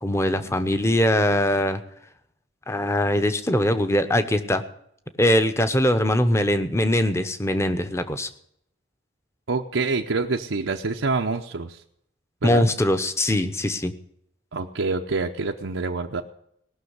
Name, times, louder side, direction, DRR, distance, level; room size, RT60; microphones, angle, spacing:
voice 1, 0.0-1.8 2.7-4.6 5.2-8.3 12.4-13.9, left 1 dB, 15° left, 10 dB, 0.8 m, -22 dB
voice 2, 9.5-11.8 12.4-12.7 14.5-16.2, right 3 dB, 90° right, 2 dB, 0.8 m, -26 dB
18.5 x 6.3 x 8.0 m, 0.71 s
head